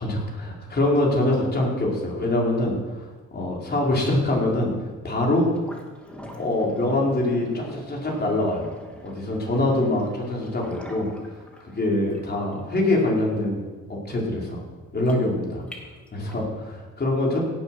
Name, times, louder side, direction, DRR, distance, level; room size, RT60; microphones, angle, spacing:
voice 1, 0.0-3.1 3.3-5.5 6.3-8.7 9.0-11.1 11.6-14.6 14.9-15.6 16.1-17.4, left 1 dB, 35° left, -2 dB, 4.5 m, -24 dB
sound 1, 5.5-16.5, equal, 5° left, 2.6 m, -44 dB
17.5 x 7.6 x 6.1 m, 1.3 s
cardioid pair, 90°, 30 cm